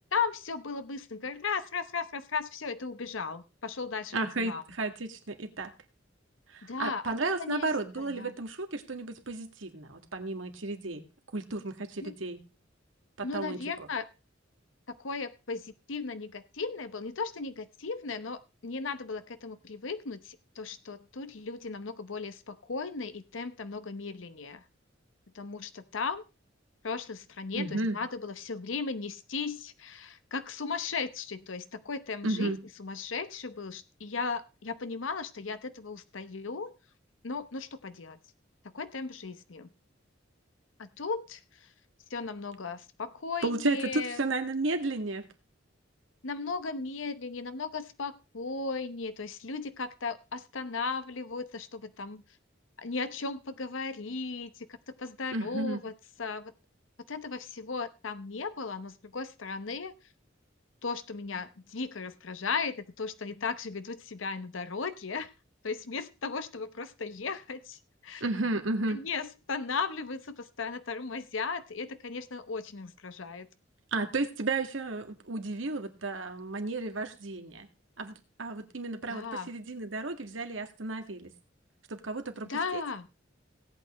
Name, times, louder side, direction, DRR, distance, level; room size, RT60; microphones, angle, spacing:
voice 1, 0.1-4.6 6.6-8.3 12.0-12.2 13.2-14.1 14.9-24.6 25.3-26.2 26.8-36.7 37.2-38.2 38.7-39.7 40.8-41.7 42.1-44.2 46.2-52.2 52.8-54.7 55.0-55.9 56.2-56.5 57.1-59.9 60.8-65.3 65.6-68.2 68.9-73.5 79.1-79.5 82.4-83.1, left 4 dB, 85° left, 11 dB, 0.9 m, -36 dB
voice 2, 4.1-5.7 6.5-11.0 11.3-12.4 13.2-13.6 27.5-28.0 32.2-32.6 43.4-45.3 55.3-55.8 68.2-69.0 73.9-77.7 78.0-81.3 81.9-82.8, right 2 dB, 85° right, 6 dB, 1.9 m, -33 dB
17.5 x 8.7 x 3.1 m, 0.29 s
head